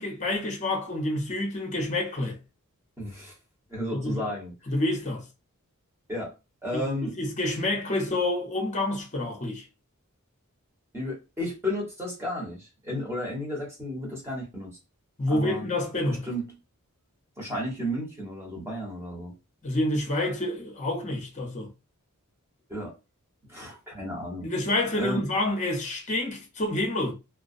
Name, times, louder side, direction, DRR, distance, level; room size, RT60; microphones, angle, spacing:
voice 1, 0.0-2.4 3.9-4.2 4.7-5.2 6.7-9.6 15.2-16.3 19.6-21.7 24.4-27.1, left 1 dB, 35° left, 0.7 m, -28 dB
voice 2, 3.0-3.3 3.7-4.5 6.1-6.3 6.6-7.1 10.9-14.8 15.3-15.6 16.3-16.6 17.4-19.3 22.7-22.9 23.5-24.5 25.0-25.2, equal, 10° right, 1.0 m, -33 dB
2.2 x 2.2 x 2.5 m
head